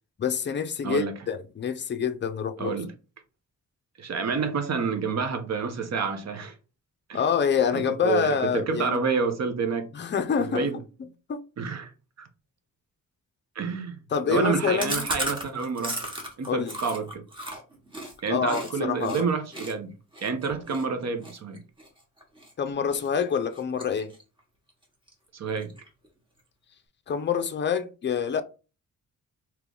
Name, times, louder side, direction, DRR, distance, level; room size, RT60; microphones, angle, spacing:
voice 1, 0.2-2.8 7.1-9.0 9.9-10.7 11.3-11.4 14.1-15.1 16.5-16.8 18.3-19.3 22.6-24.1 27.1-28.4, left 7 dB, 35° left, 0.4 m, -26 dB
voice 2, 0.8-1.1 2.6-2.9 4.0-6.5 7.1-7.2 7.7-9.9 10.4-10.7 11.6-11.9 12.2-12.3 13.6-14.0 14.3-16.0 16.4-17.2 18.2-19.9 20.2-21.6 25.3-25.7, right 5 dB, 55° right, 0.8 m, -28 dB
Chewing mastication, 14.8-18.7 19.0-19.2 19.5-22.5 22.9-23.2 23.5-24.4 24.7-24.8 25.1-25.2 25.5-26.1, right 1 dB, 15° right, 1.1 m, -35 dB
3.3 x 2.9 x 3.7 m
wide cardioid pair, 145°, 32 cm